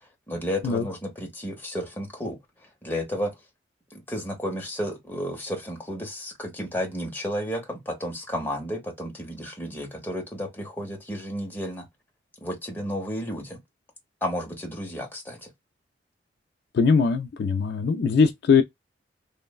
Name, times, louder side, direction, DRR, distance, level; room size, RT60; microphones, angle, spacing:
voice 1, 0.3-2.4 2.8-3.3 3.9-11.9 12.4-13.6 14.2-15.5, equal, 10° left, 0.9 m, -32 dB
voice 2, 16.7-18.6, left 5 dB, 60° left, 0.3 m, -21 dB
3.1 x 2.0 x 2.2 m
head